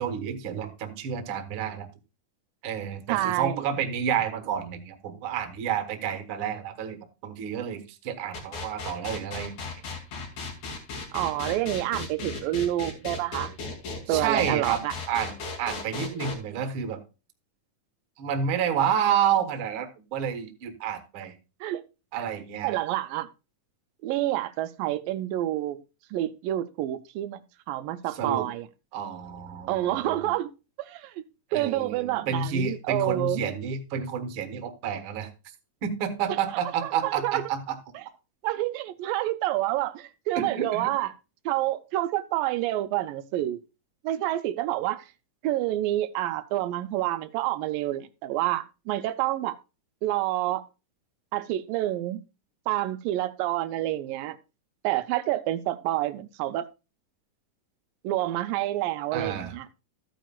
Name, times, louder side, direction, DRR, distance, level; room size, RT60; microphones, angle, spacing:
voice 1, 0.0-1.9 2.6-9.7 14.1-14.8 15.1-17.0 18.2-21.4 22.1-22.8 28.1-28.5 28.9-30.3 31.5-35.3 35.8-37.8 40.3-40.9 59.1-59.6, right 8 dB, 55° right, 1.6 m, -30 dB
voice 2, 3.1-3.7 11.1-13.5 14.1-14.9 16.1-16.3 21.6-21.8 22.2-22.3 22.6-23.3 24.0-25.8 26.1-27.4 27.7-28.7 29.7-30.5 30.8-31.1 31.5-33.4 36.3-36.4 36.8-37.4 37.9-38.0 38.4-41.1 41.5-43.6 44.0-45.1 45.4-49.6 50.0-50.6 51.3-52.2 52.7-54.4 54.8-56.7 58.0-59.7, right 15 dB, 85° right, 2.3 m, -28 dB
sound 1, 8.3-16.3, left 3 dB, 60° left, 3.6 m, -35 dB
14.0 x 9.1 x 2.3 m
omnidirectional pair, 3.9 m